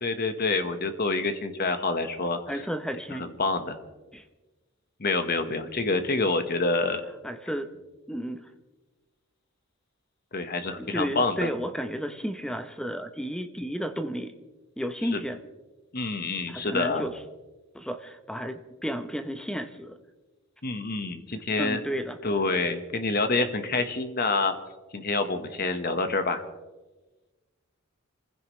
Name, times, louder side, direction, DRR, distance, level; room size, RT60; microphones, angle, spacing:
voice 1, 0.0-2.7 3.1-3.8 5.0-7.0 10.3-11.6 15.0-15.2 15.9-17.1 20.6-21.8 22.2-24.5 24.9-26.4, left 3 dB, 45° left, 8 dB, 1.4 m, -27 dB
voice 2, 2.5-3.3 4.1-4.2 7.2-7.7 8.1-8.5 10.6-14.3 14.8-15.4 16.5-17.2 17.7-20.0 21.6-22.2, equal, 5° left, 9 dB, 0.8 m, -32 dB
27.0 x 15.5 x 3.2 m, 1.2 s
head